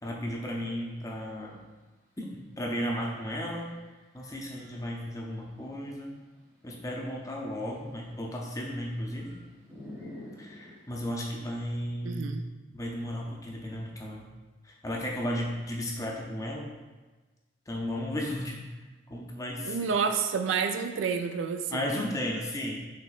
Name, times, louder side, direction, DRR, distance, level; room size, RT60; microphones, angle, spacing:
voice 1, 0.0-1.6 2.2-3.7 4.1-6.2 6.6-9.3 10.4-12.4 12.7-14.3 14.6-16.7 17.7-18.6 19.1-19.8 21.7-22.8, equal, 15° left, -2 dB, 0.5 m, -34 dB
sound 1, 0.8-0.9 1.1-3.0 3.5-5.0 5.7-11.0, left 1 dB, 20° right, 1.0 m, -50 dB
voice 2, 12.0-12.4 19.6-21.8, right 6 dB, 70° right, 6 dB, 0.3 m, -29 dB
5.8 x 3.2 x 2.4 m, 1.2 s
head